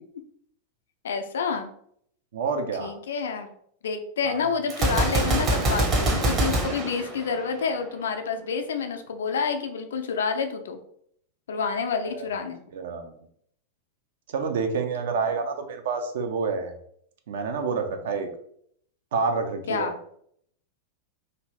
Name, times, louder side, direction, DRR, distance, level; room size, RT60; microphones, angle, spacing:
voice 1, 1.0-1.7 2.8-3.5 3.8-10.8 11.5-12.6 19.7-19.9, left 5 dB, 65° left, 6 dB, 0.4 m, -28 dB
voice 2, 2.3-3.0 4.2-4.6 12.0-12.3 12.7-13.1 14.3-16.7 17.3-18.3 19.1-19.9, right 5 dB, 55° right, 6 dB, 0.5 m, -28 dB
Gunshot gunfire, 4.7-7.8, right 2 dB, 30° right, 0.8 m, -24 dB
2.6 x 2.5 x 3.2 m, 0.67 s
figure-of-eight pair, 90°, 0 cm